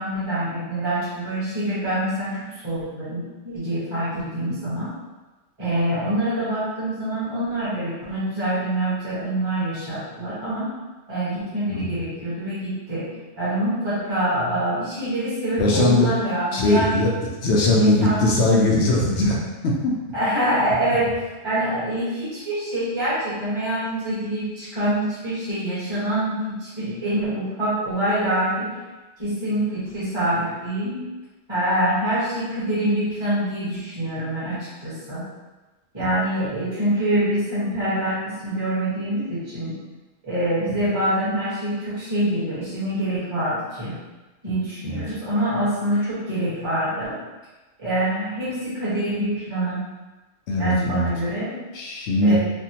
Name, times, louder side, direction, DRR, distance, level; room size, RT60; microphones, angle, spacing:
voice 1, 0.0-4.9 5.6-10.7 11.1-13.1 13.4-17.0 17.6-18.7 20.1-21.1 21.4-28.7 29.2-31.0 31.5-35.3 35.9-39.8 40.2-43.9 44.4-47.2 47.8-49.8 50.6-51.6 52.2-52.4, right 1 dB, 20° right, -11 dB, 1.2 m, -25 dB
voice 2, 15.6-16.1 16.5-17.1 17.4-19.4 19.6-19.9 36.0-36.1 40.7-40.8 44.8-45.0 50.5-51.1 51.7-52.4, left 2 dB, 65° left, -2 dB, 0.8 m, -20 dB
3.4 x 2.2 x 2.8 m, 1.2 s
omnidirectional pair, 1.3 m